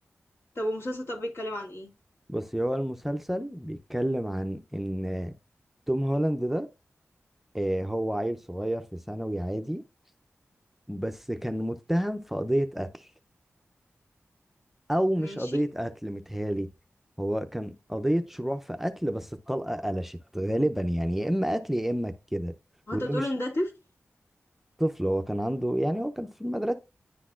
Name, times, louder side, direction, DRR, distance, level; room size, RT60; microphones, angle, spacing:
voice 1, 0.5-1.9 15.2-15.6 22.9-23.7, left 1 dB, 60° left, 2.3 m, -32 dB
voice 2, 2.3-5.3 5.9-6.7 7.5-9.8 10.9-13.1 14.9-16.7 17.2-22.5 22.9-23.3 24.8-26.7, equal, 5° right, 0.5 m, -29 dB
10.0 x 4.0 x 2.4 m
wide cardioid pair, 80°, 5 cm